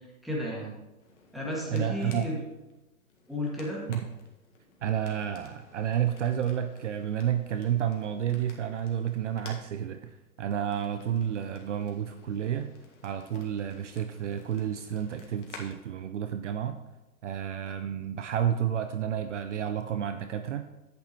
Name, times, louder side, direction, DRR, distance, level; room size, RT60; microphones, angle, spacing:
voice 1, 0.2-0.7 1.3-2.4 3.3-3.8, left 1 dB, ahead, -5 dB, 1.9 m, -33 dB
sound 1, 1.0-15.7, left 3 dB, 55° left, 1.8 m, -53 dB
voice 2, 1.7-2.3 3.9-4.1 4.8-12.7 13.0-16.8 17.2-20.6, right 9 dB, 55° right, 9 dB, 0.6 m, -30 dB
10.5 x 8.6 x 3.1 m, 1.0 s
figure-of-eight pair, 125°, 44 cm